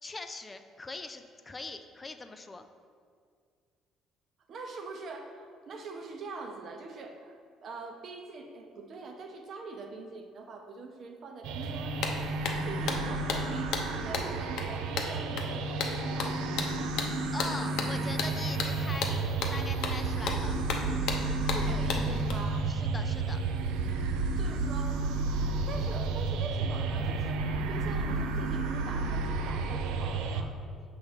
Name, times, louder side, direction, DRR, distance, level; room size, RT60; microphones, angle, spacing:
voice 1, 0.0-2.7 17.3-19.1 19.5-20.6 22.7-23.4, left 3 dB, 25° left, 8 dB, 0.4 m, -41 dB
voice 2, 4.5-16.5 21.4-22.8 24.4-25.1 25.7-30.6, right 3 dB, 55° right, 4 dB, 0.7 m, -43 dB
sound 1, 11.4-30.4, right 3 dB, 80° right, 0.4 m, -31 dB
sound 2, 11.6-11.7 12.0-22.3, left 5 dB, 75° left, 0.7 m, -35 dB
5.9 x 3.1 x 5.7 m, 2.1 s
supercardioid pair, 70°, 0 cm